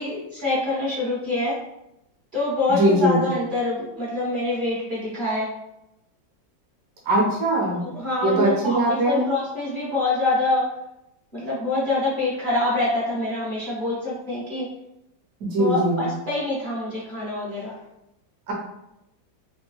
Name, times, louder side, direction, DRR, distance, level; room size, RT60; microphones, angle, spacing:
voice 1, 0.0-1.5 2.3-5.5 7.8-10.6 11.3-14.7 15.6-17.7, left 2 dB, 35° right, -7 dB, 0.9 m, -25 dB
voice 2, 2.7-3.2 7.1-7.8 8.2-9.3 15.4-16.0 18.5-18.6, right 1 dB, 55° right, -3 dB, 1.2 m, -21 dB
3.7 x 2.1 x 3.0 m, 0.86 s
omnidirectional pair, 2.0 m